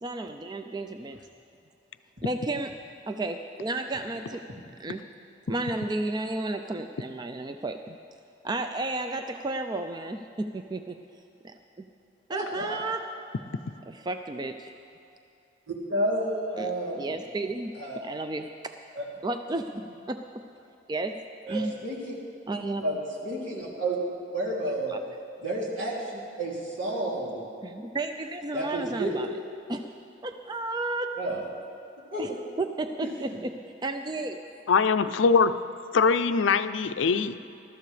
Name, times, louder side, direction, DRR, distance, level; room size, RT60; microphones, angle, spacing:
voice 1, 0.0-1.2 2.2-2.7 3.1-4.4 4.8-5.0 5.5-8.0 8.4-11.0 12.3-13.0 13.9-14.7 16.6-17.7 18.0-18.5 19.2-19.7 20.1-20.2 20.9-21.2 21.5-21.7 22.5-22.8 24.9-25.0 27.6-29.3 29.7-29.8 30.2-31.1 32.2-32.3 32.6-33.5 33.8-34.4, right 2 dB, 20° right, 7 dB, 0.4 m, -32 dB
voice 2, 12.3-12.7 15.7-17.1 17.8-18.0 19.0-19.1 21.5-22.0 22.8-23.0 23.2-24.0 24.3-24.9 25.4-27.4 28.5-29.1 31.2-31.4 32.1-32.2, right 1 dB, 80° right, -4 dB, 2.9 m, -30 dB
voice 3, 34.7-35.6 35.9-37.4, left 5 dB, 80° left, 11 dB, 0.5 m, -22 dB
20.0 x 13.0 x 3.3 m, 2.8 s
head